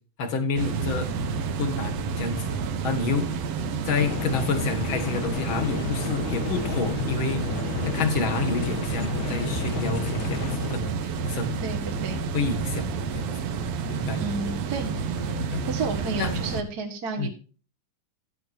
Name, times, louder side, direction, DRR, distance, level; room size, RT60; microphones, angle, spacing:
voice 1, 0.2-1.1 1.6-3.3 3.9-7.4 7.9-11.5 12.3-13.3 13.9-14.5 15.3-15.7 16.2-16.4 17.2-17.3, left 4 dB, 50° left, 8 dB, 1.9 m, -29 dB
sound 1, 0.6-16.6, right 5 dB, 65° right, 1.9 m, -30 dB
sound 2, 4.0-10.8, left 9 dB, 75° left, 2.3 m, -32 dB
voice 2, 11.6-12.2 14.2-15.1 15.7-17.3, right 3 dB, 40° right, 2 dB, 1.6 m, -31 dB
14.0 x 10.5 x 2.7 m, 0.36 s
omnidirectional pair, 3.6 m